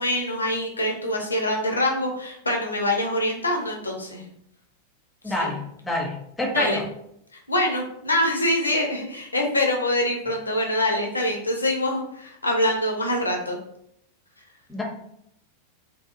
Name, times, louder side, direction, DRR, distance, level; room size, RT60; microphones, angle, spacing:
voice 1, 0.0-4.3 5.3-5.5 6.5-6.8 7.5-13.6, left 1 dB, 80° left, 1 dB, 0.5 m, -25 dB
voice 2, 5.2-6.8 14.7-14.8, left 1 dB, 10° left, 1 dB, 0.6 m, -27 dB
2.7 x 2.3 x 2.4 m, 0.75 s
figure-of-eight pair, 90°, 0 cm